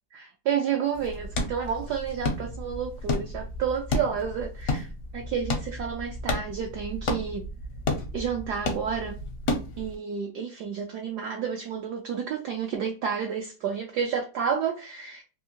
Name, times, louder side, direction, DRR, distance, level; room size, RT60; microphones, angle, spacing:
voice 1, 0.1-4.9 5.1-7.4 8.1-9.2 9.8-15.2, right 7 dB, 75° right, 0.9 m, -30 dB
sound 1, 0.9-9.9, left 2 dB, 65° left, 0.8 m, -32 dB
3.5 x 2.7 x 2.8 m
omnidirectional pair, 2.3 m